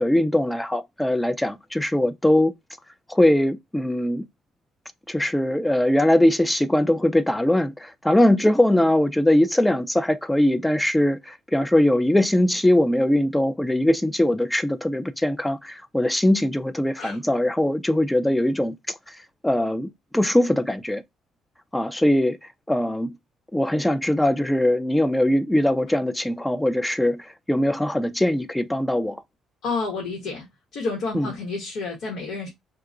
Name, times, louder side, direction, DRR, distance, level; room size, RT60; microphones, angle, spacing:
voice 1, 0.0-2.5 3.1-4.3 5.1-18.9 19.4-21.0 21.7-22.4 22.7-23.2 23.5-29.2 31.1-31.3, left 1 dB, 5° left, 0.5 m, -21 dB
voice 2, 29.6-30.5 30.7-32.5, left 4 dB, 75° left, 1.4 m, -29 dB
2.9 x 2.3 x 3.7 m
cardioid pair, 100°, 0 cm